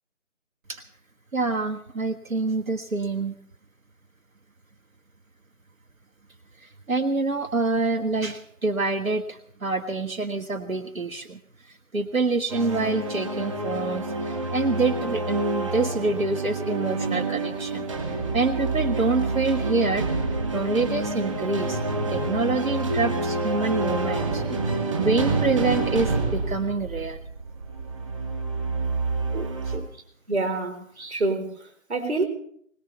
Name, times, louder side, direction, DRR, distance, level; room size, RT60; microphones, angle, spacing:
voice 1, 1.3-3.3 6.6-11.4 11.9-17.9 18.3-20.1 20.5-21.8 22.1-24.7 25.0-27.2 29.3-29.9, right 3 dB, 85° right, 7 dB, 1.6 m, -26 dB
sound 1, 12.5-29.8, right 3 dB, 25° right, 2.7 m, -28 dB
voice 2, 30.3-32.2, right 2 dB, 55° right, 7 dB, 4.3 m, -27 dB
22.0 x 19.5 x 3.4 m, 0.65 s
figure-of-eight pair, 165°, 40 cm